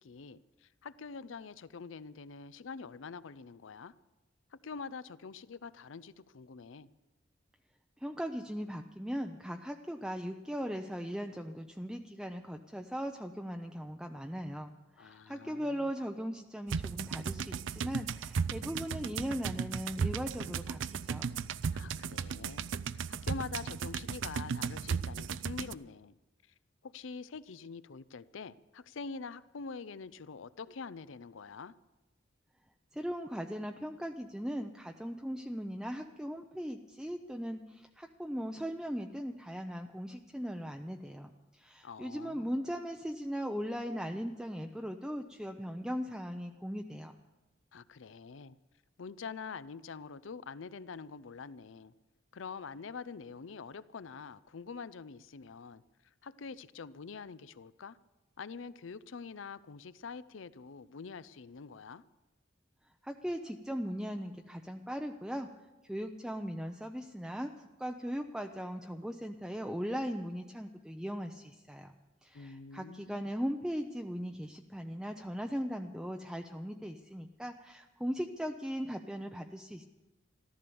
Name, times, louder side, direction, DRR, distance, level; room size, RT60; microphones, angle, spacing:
voice 1, 0.0-3.9 4.5-6.9 15.0-15.9 21.7-26.1 26.5-26.6 26.8-31.7 41.8-42.6 47.7-48.6 49.0-51.9 52.3-58.0 58.4-62.0 72.3-73.3, left 5 dB, 80° left, 17 dB, 0.5 m, -45 dB
voice 2, 8.0-14.7 15.0-21.4 32.9-47.1 63.0-65.5 65.9-67.5 67.8-71.9 72.2-79.8, equal, 5° right, 4 dB, 0.6 m, -38 dB
sound 1, 16.7-25.7, right 6 dB, 70° right, 0.4 m, -36 dB
14.0 x 13.5 x 7.0 m, 1.1 s
head